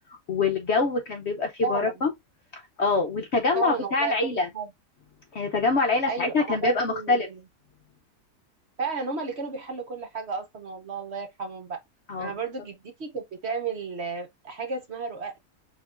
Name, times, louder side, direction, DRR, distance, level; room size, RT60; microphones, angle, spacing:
voice 1, 0.3-2.1 2.5-4.5 5.3-7.3 12.1-12.3, left 3 dB, 55° left, 0.8 m, -25 dB
voice 2, 1.6-2.0 3.5-4.7 6.1-7.4 8.8-11.8 12.2-15.4, right 4 dB, 50° right, 1.0 m, -33 dB
6.6 x 2.9 x 2.4 m
omnidirectional pair, 1.7 m